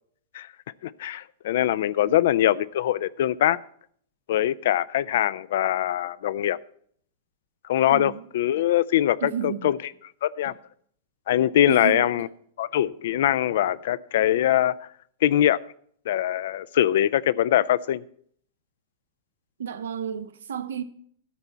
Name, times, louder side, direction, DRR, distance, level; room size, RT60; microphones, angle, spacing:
voice 1, 0.8-3.6 4.3-6.6 7.7-9.8 10.2-10.5 11.3-12.3 12.6-14.9 15.2-15.6 16.1-18.0, left 12 dB, 65° left, 0.4 m, -22 dB
voice 2, 7.9-8.2 9.2-9.7 11.7-12.3 19.6-20.8, right 9 dB, 75° right, 0.8 m, -32 dB
12.5 x 4.4 x 8.2 m
hypercardioid pair, 105°, 0 cm